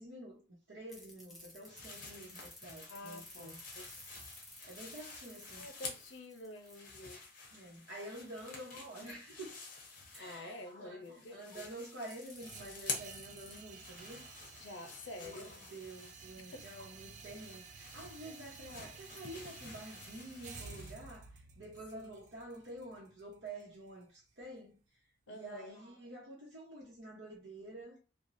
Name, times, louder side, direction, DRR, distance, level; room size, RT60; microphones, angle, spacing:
voice 1, 0.0-4.2 4.6-5.7 7.5-9.5 10.1-14.2 15.2-24.8 25.3-28.0, right 1 dB, 80° right, 0.9 m, -49 dB
sound 1, 0.9-6.8 10.1-10.2 12.1-13.6, left 1 dB, ahead, 0.7 m, -54 dB
sound 2, 1.7-6.2 6.6-10.7 11.0-20.9, left 4 dB, 45° left, 0.8 m, -49 dB
voice 2, 2.9-3.9 5.5-7.2 10.2-11.7 14.6-15.5 16.4-16.7 21.9-22.1 25.3-25.8, left 1 dB, 80° left, 0.5 m, -49 dB
sound 3, 12.4-24.4, right 5 dB, 40° right, 0.3 m, -53 dB
3.1 x 2.2 x 2.6 m
head